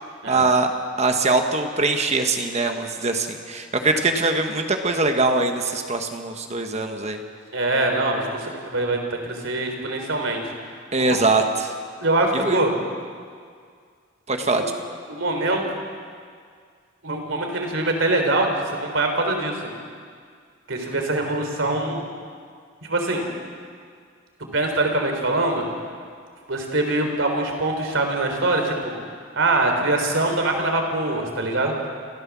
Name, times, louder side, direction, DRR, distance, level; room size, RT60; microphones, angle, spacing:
voice 1, 0.3-0.7 1.0-7.2 10.9-11.7 12.4-12.6 14.3-14.6, right 3 dB, 30° right, 5 dB, 1.4 m, -22 dB
voice 2, 7.5-10.6 11.0-11.2 12.0-12.7 14.5-14.7 15.1-15.7 17.0-19.7 20.7-22.0 22.8-23.2 24.5-25.6 26.5-28.9 29.4-31.8, right 2 dB, 65° right, 3 dB, 3.9 m, -23 dB
28.0 x 15.5 x 7.4 m, 2.1 s
head